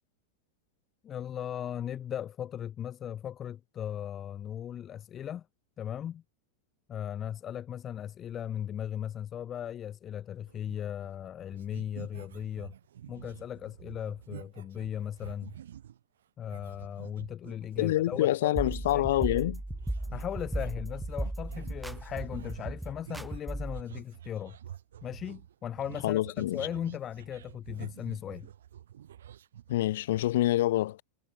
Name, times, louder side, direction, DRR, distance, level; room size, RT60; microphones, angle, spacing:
voice 1, 1.0-5.5 5.8-6.2 6.9-12.7 13.1-15.6 16.4-18.5 18.9-19.0 20.1-24.6 25.0-28.5, left 10 dB, 30° left, 4.5 m, -37 dB
sound 1, 10.5-11.3 11.5-16.0 16.5-30.2, right 10 dB, 80° right, 1.6 m, -48 dB
voice 2, 17.8-19.6 26.0-26.6 29.7-31.0, left 14 dB, 70° left, 1.3 m, -26 dB
sound 2, 18.6-23.8, right 1 dB, 5° right, 3.0 m, -36 dB
hypercardioid pair, 105°, 0 cm